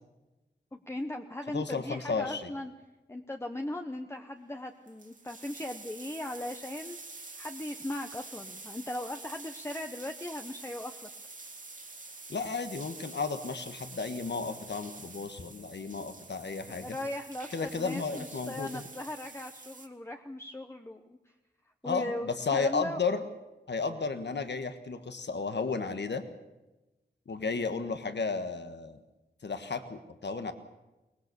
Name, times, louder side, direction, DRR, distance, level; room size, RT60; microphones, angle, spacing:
voice 1, 0.7-2.7 3.1-7.0 7.4-11.1 16.7-21.2 21.8-23.0, left 1 dB, 15° left, 5 dB, 1.0 m, -38 dB
voice 2, 1.5-2.5 12.3-17.0 17.5-18.8 21.8-23.2 23.7-26.2 27.3-29.0 29.4-30.5, left 4 dB, 75° left, 9 dB, 1.4 m, -33 dB
sound 1, 4.5-4.6 4.7-19.9, right 3 dB, 45° right, 2.0 m, -47 dB
22.5 x 19.5 x 6.9 m, 1.1 s
wide cardioid pair, 65°, 18 cm